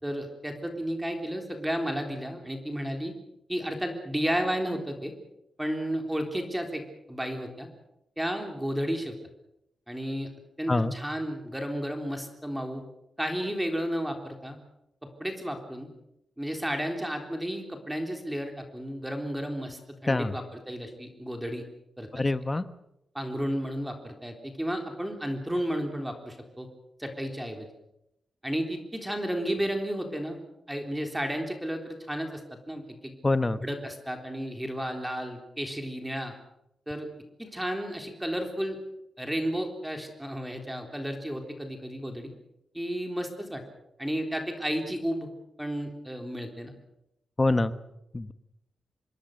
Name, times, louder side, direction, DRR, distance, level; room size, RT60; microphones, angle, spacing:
voice 1, 0.0-3.1 3.5-5.1 5.6-6.8 7.1-7.7 8.2-9.1 9.9-10.3 10.6-12.8 13.2-14.6 15.0-15.9 16.4-21.6 22.0-22.1 23.1-26.7 27.0-27.7 28.4-30.4 30.7-32.4 32.7-33.1 33.6-36.3 36.9-37.1 37.4-38.8 39.2-42.3 42.7-43.6 44.0-45.3 45.6-46.7, equal, 5° right, 4 dB, 3.7 m, -32 dB
voice 2, 22.1-22.6 33.2-33.6 47.4-47.7 48.1-48.3, left 2 dB, 20° left, 12 dB, 1.2 m, -25 dB
26.0 x 21.5 x 6.6 m, 0.84 s
wide cardioid pair, 115°, 0 cm